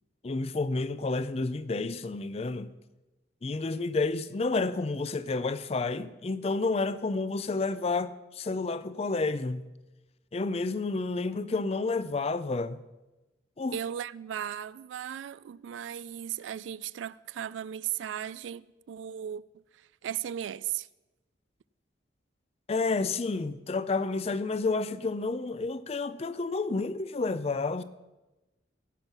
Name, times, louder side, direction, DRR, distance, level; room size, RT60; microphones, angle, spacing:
voice 1, 0.2-2.7 3.4-9.7 10.3-12.8 13.6-13.8 22.7-27.8, left 3 dB, 35° left, 0.4 m, -30 dB
voice 2, 13.7-19.4 19.7-20.9, right 10 dB, 85° right, 0.3 m, -36 dB
15.5 x 5.6 x 6.0 m
head